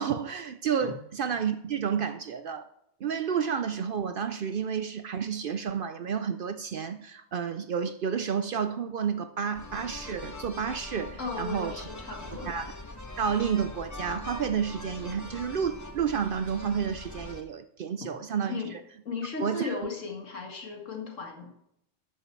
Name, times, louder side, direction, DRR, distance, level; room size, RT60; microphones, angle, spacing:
voice 1, 0.0-2.7 3.0-11.9 12.4-12.7 13.2-18.6 19.4-19.7, right 7 dB, 60° right, 0.6 m, -30 dB
sound 1, 9.5-17.4, left 2 dB, 15° left, 0.7 m, -42 dB
voice 2, 11.2-12.5 18.0-18.1 18.5-18.7 19.1-21.5, left 4 dB, 75° left, 2.1 m, -36 dB
12.5 x 6.5 x 4.5 m
omnidirectional pair, 1.3 m